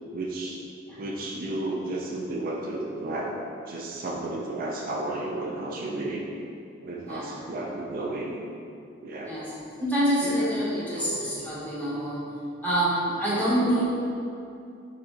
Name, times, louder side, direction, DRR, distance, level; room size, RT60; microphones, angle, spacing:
voice 1, 0.1-0.6 1.0-3.4 3.7-6.3 6.8-8.5 9.0-9.4 10.2-10.5 10.9-11.2, right 2 dB, 50° right, -2 dB, 0.4 m, -33 dB
voice 2, 9.8-12.3 12.6-13.8, right 1 dB, 10° left, -9 dB, 1.1 m, -26 dB
4.2 x 3.7 x 2.8 m, 2.6 s
head